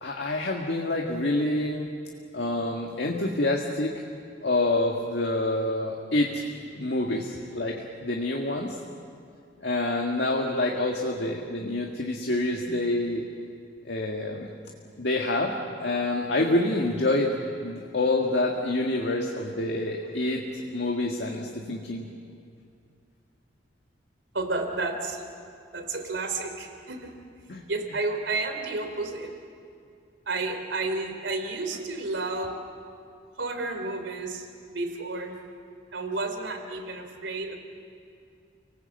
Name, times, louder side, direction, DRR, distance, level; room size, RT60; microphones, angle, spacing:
voice 1, 0.0-1.9 2.3-3.9 4.4-6.4 6.7-8.8 9.6-13.2 13.9-14.5 15.0-15.5 15.8-17.3 17.6-22.1 27.5-27.6, left 2 dB, 65° left, 0 dB, 1.8 m, -27 dB
voice 2, 24.3-25.2 25.7-27.1 27.7-29.3 30.3-32.6 33.4-35.3 35.9-37.6, right 3 dB, 80° right, 5 dB, 3.2 m, -31 dB
30.0 x 19.0 x 7.9 m, 2.4 s
head